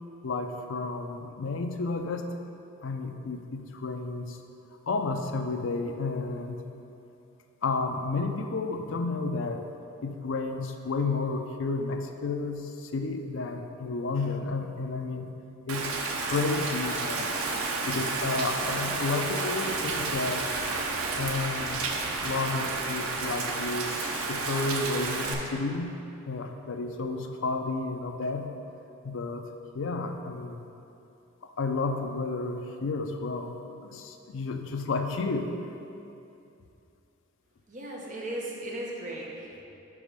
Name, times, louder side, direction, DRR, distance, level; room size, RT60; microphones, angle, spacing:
voice 1, 0.2-2.4 2.8-4.4 4.9-6.6 7.6-9.6 10.0-15.3 15.7-20.5 21.2-21.9 22.2-26.0 26.3-28.5 29.0-29.5 29.7-30.6 31.4-33.6 33.8-35.5, left 3 dB, 60° left, 5 dB, 0.4 m, -31 dB
Rain, 15.7-25.3, right 3 dB, 90° right, 0.6 m, -31 dB
voice 2, 37.7-39.6, right 1 dB, 35° right, -3 dB, 0.9 m, -37 dB
5.2 x 4.8 x 5.1 m, 2.8 s
head